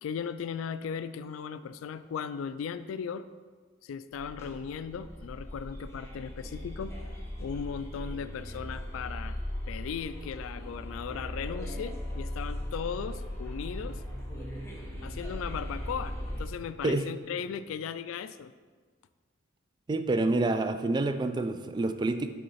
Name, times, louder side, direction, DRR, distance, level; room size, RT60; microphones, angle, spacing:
voice 1, 0.0-3.3 3.8-7.0 7.4-9.4 9.7-14.0 15.0-18.5, left 7 dB, 80° left, 14 dB, 0.3 m, -37 dB
sound 1, 4.1-16.4, left 1 dB, 15° left, 1.0 m, -38 dB
voice 2, 19.9-22.3, right 2 dB, 20° right, 9 dB, 0.3 m, -27 dB
8.4 x 3.8 x 4.2 m, 1.5 s
head